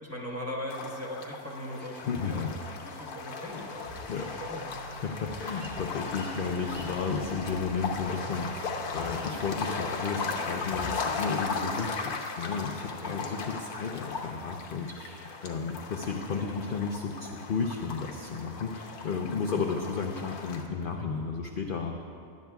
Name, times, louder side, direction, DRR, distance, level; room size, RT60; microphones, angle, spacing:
voice 1, 0.0-4.6 13.0-13.2 19.4-19.6, equal, 10° right, -4 dB, 1.1 m, -40 dB
sound 1, 0.7-20.6, left 4 dB, 90° left, 1.4 m, -37 dB
voice 2, 2.0-2.5 4.1-4.3 4.9-21.9, left 5 dB, 60° left, 2 dB, 0.6 m, -33 dB
sound 2, 3.4-11.4, right 2 dB, 85° right, 2.3 m, -53 dB
sound 3, 3.8-11.2, right 1 dB, 40° right, 1.9 m, -45 dB
18.0 x 10.5 x 2.3 m, 2.4 s
omnidirectional pair, 1.5 m